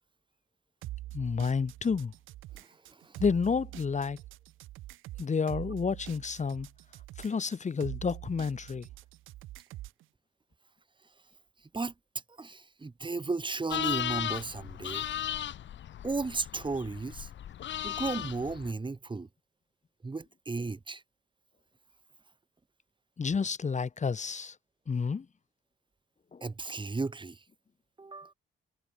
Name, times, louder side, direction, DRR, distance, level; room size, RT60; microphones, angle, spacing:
sound 1, 0.8-10.0, right 16 dB, 90° right, 4.1 m, -44 dB
voice 1, 1.1-2.1 3.2-4.2 5.2-6.7 7.2-8.9 23.2-24.5 24.9-25.3 26.3-26.4, left 5 dB, 35° left, 3.8 m, -30 dB
voice 2, 12.4-15.0 16.0-17.3 17.8-19.3 20.0-21.0 26.4-27.4 28.0-28.3, right 3 dB, 25° right, 6.6 m, -34 dB
sound 2, 13.7-18.7, left 11 dB, 70° left, 3.6 m, -36 dB
cardioid pair, 90°, 20 cm